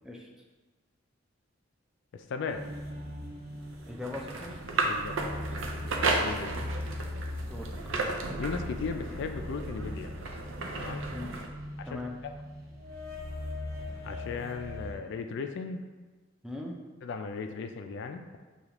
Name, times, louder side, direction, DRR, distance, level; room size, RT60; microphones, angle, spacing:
voice 1, 2.1-2.6 4.8-5.2 6.2-6.6 8.4-10.1 10.8-11.0 11.8-12.3 14.0-15.8 17.0-18.4, left 5 dB, 60° left, 6 dB, 0.3 m, -36 dB
sound 1, 2.4-15.0, left 1 dB, 50° right, 0.9 m, -40 dB
sound 2, 3.7-11.5, right 3 dB, 70° right, 0.5 m, -34 dB
voice 2, 3.9-4.6 7.4-7.7 11.1-11.4 11.9-12.1 16.4-16.8, left 2 dB, 5° right, -1 dB, 0.4 m, -39 dB
6.6 x 2.4 x 2.9 m, 1.3 s
head